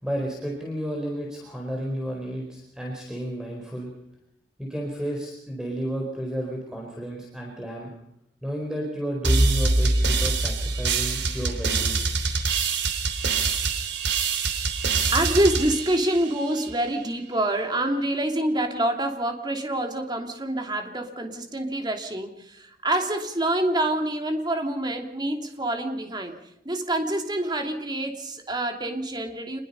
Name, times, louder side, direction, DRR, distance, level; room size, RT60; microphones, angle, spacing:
voice 1, 0.0-3.9 4.6-7.9 8.4-12.0, equal, 5° right, -1 dB, 4.4 m, -32 dB
sound 1, 9.2-16.7, right 3 dB, 80° right, 3.3 m, -24 dB
voice 2, 15.1-29.6, right 1 dB, 25° right, 4 dB, 2.9 m, -26 dB
27.0 x 21.5 x 5.6 m, 0.80 s
head